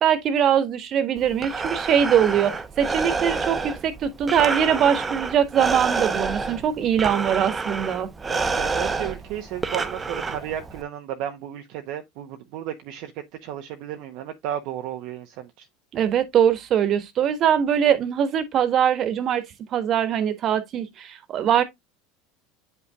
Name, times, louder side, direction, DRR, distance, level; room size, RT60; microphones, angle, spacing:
voice 1, 0.0-8.1 15.9-19.4 19.7-21.6, right 9 dB, 45° right, 1.5 m, -22 dB
Breathing, 1.2-10.8, right 4 dB, 20° right, 0.9 m, -28 dB
voice 2, 8.3-13.1 13.4-15.7, right 11 dB, 60° right, 0.9 m, -33 dB
9.2 x 5.6 x 2.4 m
hypercardioid pair, 80°, 0 cm